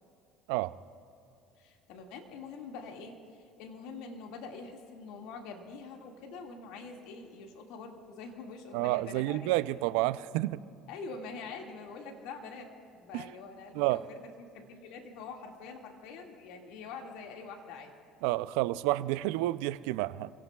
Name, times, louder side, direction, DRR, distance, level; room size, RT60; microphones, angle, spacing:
voice 1, 1.6-9.8 10.9-17.9, left 4 dB, 75° left, 2 dB, 2.1 m, -45 dB
voice 2, 8.7-10.6 13.1-13.2 13.7-14.0 18.2-20.3, right 17 dB, 80° right, 16 dB, 0.4 m, -30 dB
28.0 x 17.5 x 2.4 m, 2.6 s
supercardioid pair, 80°, 0 cm